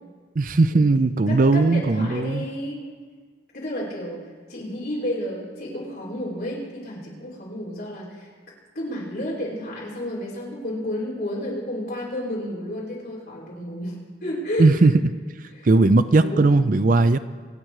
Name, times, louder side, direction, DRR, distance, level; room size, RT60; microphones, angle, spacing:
voice 1, 0.4-2.4 14.6-14.9 15.6-17.2, right 3 dB, 45° right, 12 dB, 0.5 m, -18 dB
voice 2, 1.3-2.8 3.5-4.2 4.5-8.3 8.7-13.9 14.2-14.7 15.5-15.7 16.1-16.6, left 1 dB, 55° left, -5 dB, 5.3 m, -31 dB
25.5 x 8.8 x 4.8 m, 1.5 s
head